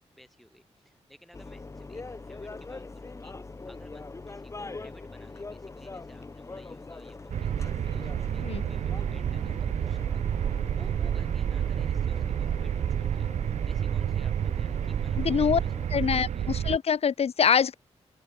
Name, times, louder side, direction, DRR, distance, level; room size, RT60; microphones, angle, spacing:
voice 1, 0.0-3.3 3.7-13.3 13.6-16.5, equal, ahead, 7.2 m, -56 dB
sound 1, 1.3-15.9, left 3 dB, 25° left, 2.9 m, -43 dB
sound 2, 7.3-16.8, right 9 dB, 85° right, 0.7 m, -29 dB
voice 2, 15.2-15.6 15.9-17.7, left 7 dB, 60° left, 1.5 m, -24 dB
open air
wide cardioid pair, 130°, 11 cm